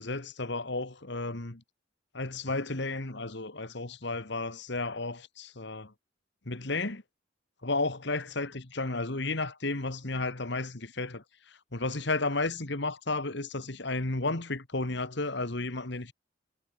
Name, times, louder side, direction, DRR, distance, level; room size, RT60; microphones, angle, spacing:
voice 1, 0.0-1.6 2.1-5.9 6.5-7.0 7.6-16.1, left 3 dB, 60° left, 1.9 m, -33 dB
head